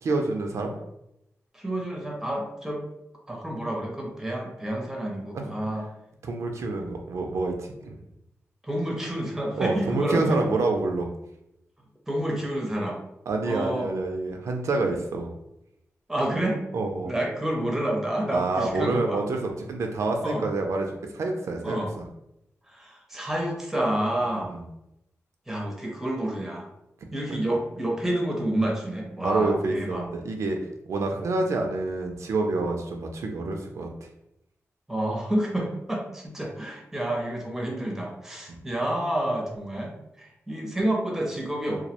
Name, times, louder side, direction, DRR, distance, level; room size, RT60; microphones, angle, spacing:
voice 1, 0.0-0.8 5.3-5.7 6.2-8.0 9.6-11.1 13.3-15.3 16.7-17.2 18.3-21.8 24.2-24.6 27.0-27.4 29.2-30.6 30.9-33.9 38.5-38.6, right 3 dB, 70° right, 3 dB, 0.3 m, -28 dB
voice 2, 1.5-2.8 3.3-5.8 8.6-10.4 12.1-13.0 13.4-13.9 16.1-16.6 17.0-19.2 20.2-20.4 21.6-21.9 22.7-24.6 25.5-26.7 27.1-30.1 34.9-41.8, right 1 dB, 5° right, -1 dB, 0.5 m, -29 dB
2.3 x 2.0 x 2.8 m, 0.84 s
wide cardioid pair, 145°, 5 cm